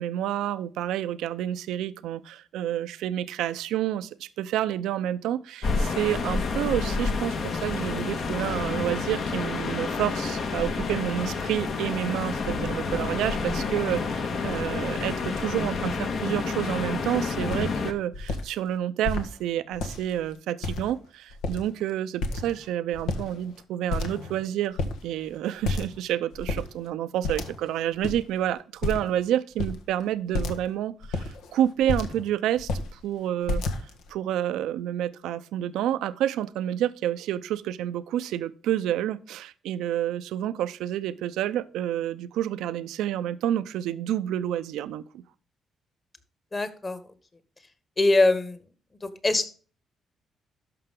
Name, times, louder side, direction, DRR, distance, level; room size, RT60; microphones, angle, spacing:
voice 1, 0.0-33.6 34.1-45.2, right 11 dB, 85° right, 0.6 m, -29 dB
sound 1, 5.6-17.9, left 4 dB, 60° left, 1.7 m, -29 dB
sound 2, 17.1-17.2 17.5-17.8 18.1-18.4 19.0-19.3 19.7-20.2 20.6-21.1 21.3-21.8 22.2-22.7 22.9-23.6 23.9-24.4 24.8-25.0 25.6-26.0 26.3-26.7 27.2-27.7 28.0-28.2 28.8-29.2 29.6-29.8 30.3-30.6 31.0-32.2 32.6-32.9 33.5-34.1, left 3 dB, 85° left, 1.5 m, -30 dB
voice 2, 46.5-47.0 48.0-48.6 49.0-49.5, left 2 dB, 25° left, 1.7 m, -22 dB
12.5 x 5.8 x 3.7 m
cardioid pair, 90°, 0 cm